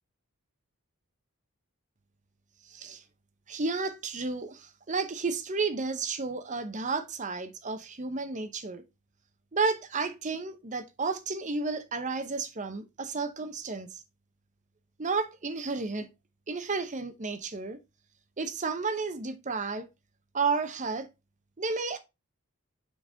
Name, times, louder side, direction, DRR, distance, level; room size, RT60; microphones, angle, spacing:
voice 1, 2.7-3.0 3.5-8.8 9.5-14.0 15.0-16.1 16.5-17.8 18.4-19.9 20.3-21.1 21.6-22.0, right 4 dB, 35° right, 0.8 m, -32 dB
6.2 x 3.9 x 3.8 m
head